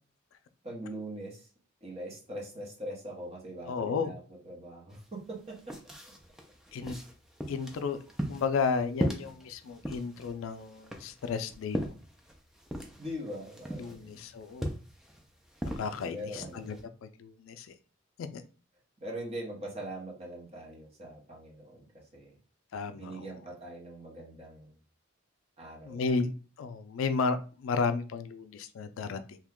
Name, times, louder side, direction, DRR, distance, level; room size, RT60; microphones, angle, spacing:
voice 1, 0.6-1.5 1.8-4.2 4.4-5.8 13.0-14.3 16.1-16.7 19.0-22.3 22.9-24.8 25.6-26.2, right 1 dB, 30° right, -2 dB, 0.9 m, -42 dB
voice 2, 3.7-4.1 6.7-7.0 7.5-8.0 8.3-11.9 13.8-14.7 15.8-17.7 18.2-18.4 22.7-23.4 25.8-26.3 26.6-29.4, left 5 dB, 75° left, 10 dB, 0.3 m, -33 dB
sound 1, 4.9-5.0 5.3-16.8, right 1 dB, ahead, 0.3 m, -39 dB
2.8 x 2.2 x 3.5 m, 0.36 s
head